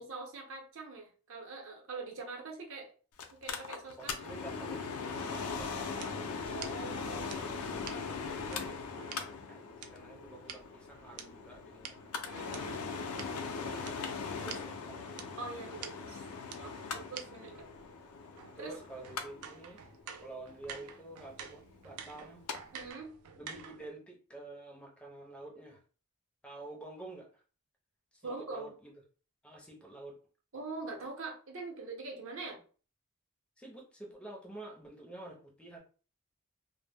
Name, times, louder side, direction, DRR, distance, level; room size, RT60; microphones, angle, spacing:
voice 1, 0.0-2.9 3.3-4.1 6.5-7.8 12.2-12.9 15.4-15.8 16.1-16.2 16.6-17.7 18.6-18.8 22.7-23.1 28.2-28.7 30.5-32.6, right 3 dB, 60° right, 1 dB, 0.7 m, -43 dB
Mechanical fan, 3.2-22.6 22.9-23.0, left 5 dB, 75° left, 0.4 m, -40 dB
voice 2, 4.0-7.0 7.9-12.2 13.3-15.3 15.8-16.0 18.4-19.8 20.2-22.4 23.3-25.8 26.4-27.4 28.1-28.9 29.4-30.2 33.6-35.8, right 2 dB, 5° left, 0 dB, 0.5 m, -49 dB
sound 1, 5.3-9.2 9.8-12.6 13.2-13.3 13.9-14.0 14.2-14.3 14.5-14.6 15.2-15.3 15.8-15.9 16.5-16.6 17.1-17.2 17.5-23.9, right 7 dB, 90° right, 0.4 m, -49 dB
2.1 x 2.0 x 3.3 m, 0.38 s
head